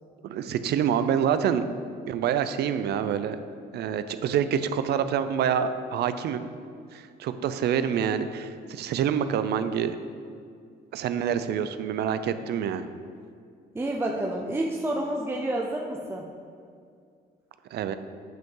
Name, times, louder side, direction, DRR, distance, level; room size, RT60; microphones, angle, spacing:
voice 1, 0.2-1.6 2.1-3.4 3.7-6.5 6.9-10.0 10.9-12.9 17.7-17.9, right 8 dB, 70° right, 11 dB, 0.5 m, -27 dB
voice 2, 13.7-16.3, right 1 dB, 15° right, 0 dB, 0.5 m, -29 dB
9.1 x 5.2 x 3.8 m, 2.3 s
cardioid pair, 115°, 18 cm